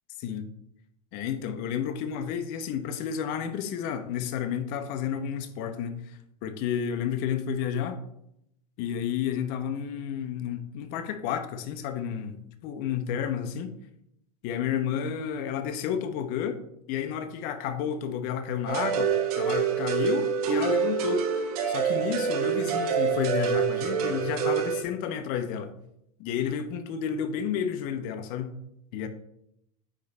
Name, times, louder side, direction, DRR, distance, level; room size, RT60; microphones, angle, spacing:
voice 1, 1.1-8.0 8.8-13.7 14.4-16.6 16.9-21.2 21.7-25.7 26.2-28.5 28.9-29.1, left 8 dB, 50° left, 9 dB, 0.9 m, -31 dB
sound 1, 18.7-24.8, right 7 dB, 75° right, 1.6 m, -26 dB
9.2 x 3.3 x 4.1 m, 0.78 s
supercardioid pair, 130°, 19 cm